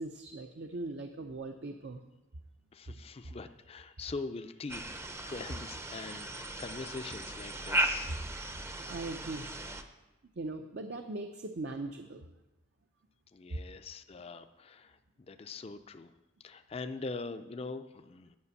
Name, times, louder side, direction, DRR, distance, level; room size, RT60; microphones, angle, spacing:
voice 1, 0.0-2.0 8.9-9.5 10.4-12.3 13.5-13.6, right 2 dB, 60° right, 5 dB, 0.6 m, -39 dB
voice 2, 2.7-4.8 5.2-8.1 13.3-15.0 15.3-16.1 16.4-18.4, left 3 dB, 30° left, 9 dB, 0.4 m, -42 dB
sound 1, 4.7-9.8, right 1 dB, 15° right, 0.6 m, -36 dB
9.6 x 6.0 x 8.3 m, 1.0 s
head